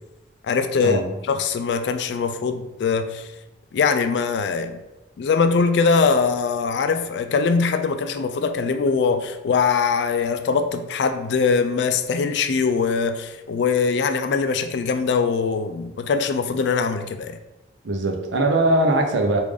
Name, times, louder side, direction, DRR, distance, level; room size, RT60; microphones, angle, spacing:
voice 1, 0.5-3.3 3.7-4.8 5.2-17.4, left 5 dB, 70° left, 9 dB, 0.3 m, -22 dB
voice 2, 17.8-19.4, right 1 dB, 85° right, 3 dB, 0.6 m, -20 dB
3.3 x 2.5 x 3.5 m, 0.99 s
head